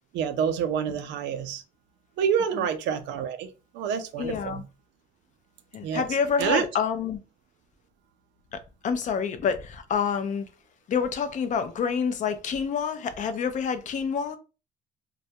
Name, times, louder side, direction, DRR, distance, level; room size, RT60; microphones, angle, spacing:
voice 1, 0.1-1.6 2.2-3.5 3.7-4.6 5.8-6.0 6.4-6.7, right 8 dB, 75° right, 0.5 m, -27 dB
voice 2, 4.2-4.6 5.7-7.2 8.5-10.5 10.9-14.4, left 6 dB, 40° left, 0.4 m, -28 dB
2.2 x 2.1 x 2.7 m
cardioid pair, 110°, 19 cm